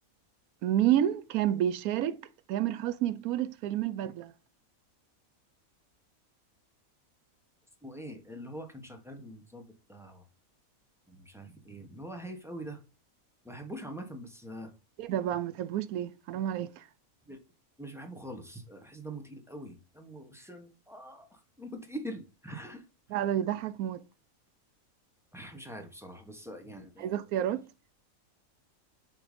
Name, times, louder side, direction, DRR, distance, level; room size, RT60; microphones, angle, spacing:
voice 1, 0.6-2.2 2.5-4.3 15.0-16.8 23.1-24.0 27.0-27.7, right 11 dB, 85° right, 1.0 m, -29 dB
voice 2, 7.8-10.2 11.1-12.8 13.4-14.7 17.3-17.4 17.8-22.8 25.3-27.1, right 1 dB, ahead, 0.8 m, -44 dB
6.8 x 3.7 x 5.0 m
omnidirectional pair, 1.5 m